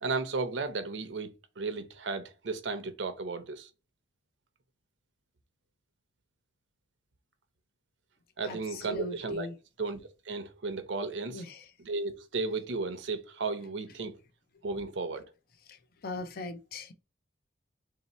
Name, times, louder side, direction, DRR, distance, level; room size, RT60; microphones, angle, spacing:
voice 1, 0.0-3.7 8.4-9.5 9.8-10.0 10.3-11.4 11.8-14.1 14.6-15.3, right 3 dB, 80° right, 0.7 m, -34 dB
voice 2, 8.4-9.6 11.3-11.6 15.7-16.9, left 2 dB, 55° left, 0.6 m, -40 dB
3.1 x 2.8 x 4.2 m
head